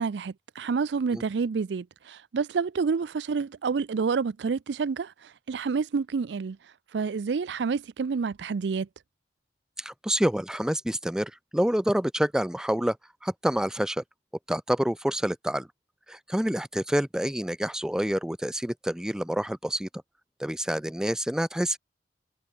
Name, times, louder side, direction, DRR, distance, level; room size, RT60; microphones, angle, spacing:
voice 1, 0.0-6.6 6.9-8.9, right 5 dB, 75° right, 0.4 m, -28 dB
voice 2, 9.8-13.0 13.2-14.0 14.5-15.7 16.1-19.9 20.4-21.8, equal, 5° right, 0.4 m, -27 dB
head